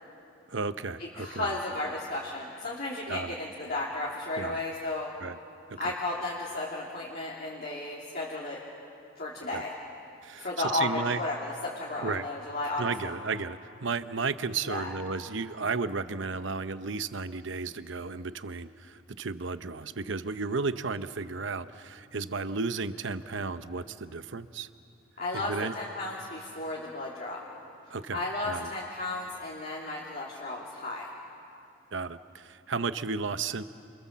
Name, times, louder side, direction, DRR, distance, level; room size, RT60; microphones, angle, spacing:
voice 1, 0.5-1.6 3.1-3.4 4.4-4.6 5.2-5.4 5.7-5.9 9.5-9.6 10.2-11.2 12.0-12.3 12.8-24.7 25.3-25.8 27.9-28.7 31.9-33.6, right 4 dB, 60° right, 12 dB, 0.8 m, -33 dB
voice 2, 1.0-5.1 5.8-8.6 9.2-9.7 10.4-13.1 14.6-14.9 25.2-27.4 28.1-31.1, left 2 dB, 45° left, -5 dB, 2.9 m, -34 dB
29.0 x 26.5 x 7.4 m, 2.7 s
head